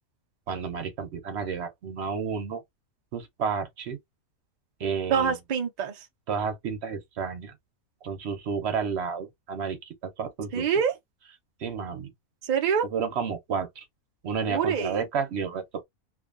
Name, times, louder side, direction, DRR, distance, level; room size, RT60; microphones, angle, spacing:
voice 1, 0.5-2.6 3.1-4.0 4.8-5.3 6.3-7.5 8.0-10.7 11.6-12.1 12.9-13.8 14.2-15.8, right 6 dB, 55° right, 0.8 m, -31 dB
voice 2, 5.1-6.1 10.5-10.9 12.4-12.9 14.5-15.0, right 7 dB, 75° right, 0.4 m, -25 dB
2.5 x 2.4 x 2.4 m
omnidirectional pair, 1.5 m